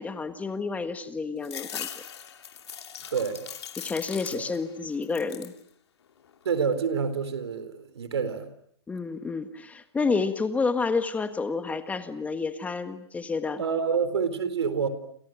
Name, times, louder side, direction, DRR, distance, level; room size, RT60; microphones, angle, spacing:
voice 1, 0.0-2.0 3.8-5.5 8.9-13.6, left 4 dB, 10° left, 9 dB, 1.6 m, -30 dB
sound 1, 1.4-4.7 5.0-5.6 6.1-6.8, left 8 dB, 75° left, 2.7 m, -40 dB
voice 2, 3.1-3.4 4.3-4.4 6.4-8.5 13.6-14.9, right 6 dB, 80° right, 12 dB, 4.1 m, -27 dB
30.0 x 28.0 x 6.4 m, 0.66 s
hypercardioid pair, 125°, 14 cm